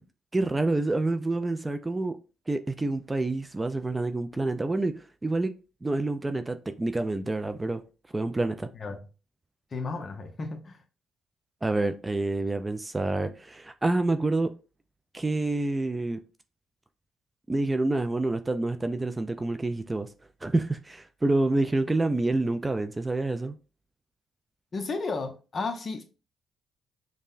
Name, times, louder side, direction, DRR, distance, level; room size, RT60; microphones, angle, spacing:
voice 1, 0.3-2.2 2.5-5.5 5.8-7.8 8.1-8.7 11.6-14.5 15.1-16.2 17.5-20.1 20.4-23.6, right 2 dB, 20° right, 0.3 m, -27 dB
voice 2, 9.7-10.8 24.7-26.0, left 3 dB, 40° left, 0.7 m, -33 dB
5.3 x 2.1 x 2.4 m
cardioid pair, 90°, 0 cm